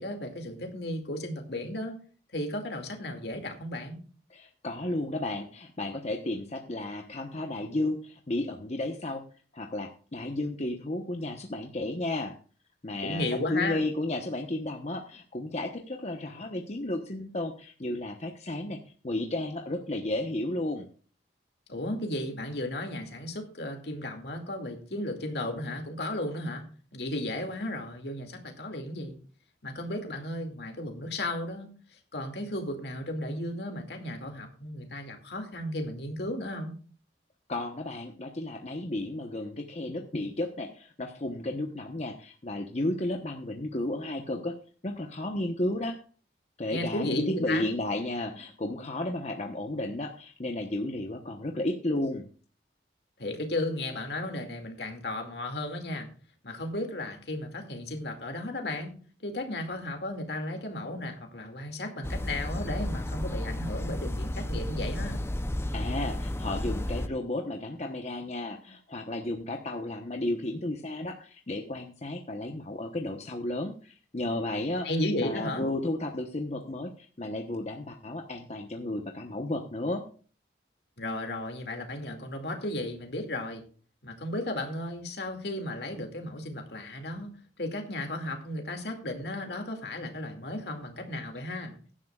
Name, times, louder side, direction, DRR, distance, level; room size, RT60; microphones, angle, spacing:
voice 1, 0.0-2.0 2.3-4.0 13.0-13.8 21.7-26.7 26.9-29.2 29.6-36.8 46.7-47.7 53.2-56.1 56.4-65.2 74.8-75.7 81.0-83.6 84.0-87.3 87.6-91.8, left 1 dB, 65° left, 3 dB, 2.3 m, -34 dB
voice 2, 4.3-9.2 9.5-12.3 12.8-18.8 19.0-20.9 37.5-44.6 44.8-46.0 46.6-52.3 65.7-74.9 75.2-80.0, left 1 dB, 40° left, 3 dB, 1.0 m, -33 dB
sound 1, 62.0-67.1, left 1 dB, 15° left, 0.6 m, -32 dB
16.5 x 11.0 x 2.4 m, 0.40 s
head